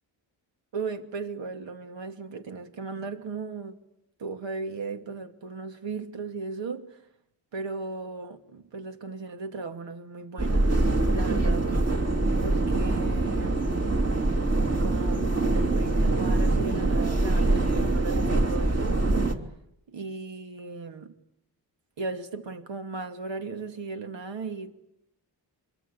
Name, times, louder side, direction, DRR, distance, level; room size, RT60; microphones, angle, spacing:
voice 1, 0.7-3.8 4.2-7.0 7.5-11.7 12.4-13.7 14.8-19.0 19.9-21.1 22.0-24.7, right 4 dB, 85° right, 2.6 m, -36 dB
sound 1, 10.4-19.3, right 2 dB, 35° right, 3.2 m, -24 dB
26.5 x 23.0 x 8.8 m
cardioid pair, 90°, 43 cm